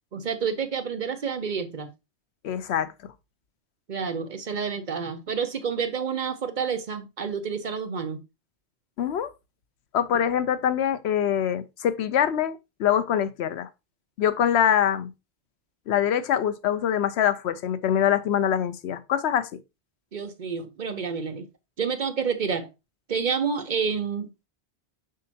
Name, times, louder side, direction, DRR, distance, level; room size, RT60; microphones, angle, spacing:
voice 1, 0.1-1.9 3.9-8.2 20.1-21.5 21.8-22.7 23.1-24.5, right 6 dB, 50° right, 0.8 m, -29 dB
voice 2, 2.4-2.9 9.0-9.3 9.9-13.7 14.2-15.1 15.9-19.5, left 9 dB, 80° left, 0.9 m, -24 dB
7.5 x 5.3 x 2.7 m
omnidirectional pair, 1.1 m